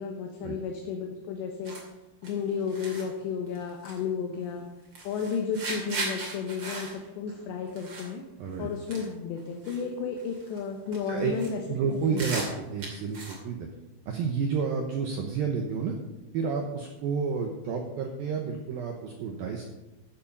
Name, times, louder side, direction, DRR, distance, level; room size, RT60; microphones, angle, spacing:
voice 1, 0.0-1.8 2.2-4.7 5.0-8.2 8.6-11.6 11.9-12.3, left 6 dB, 75° left, 2 dB, 3.0 m, -33 dB
sound 1, 1.6-1.9 2.2-2.3 2.7-3.1 3.5-4.0 4.3-4.6 4.9-8.1 8.4-8.6 8.9-9.1 9.4-9.8 10.2-10.6 10.9-11.5 11.9-13.4, right 2 dB, 35° right, 2.5 m, -37 dB
voice 2, 11.7-13.7 14.1-15.9 16.3-19.7, right 6 dB, 85° right, 3 dB, 2.1 m, -30 dB
14.0 x 7.2 x 5.4 m, 1.0 s
omnidirectional pair, 5.6 m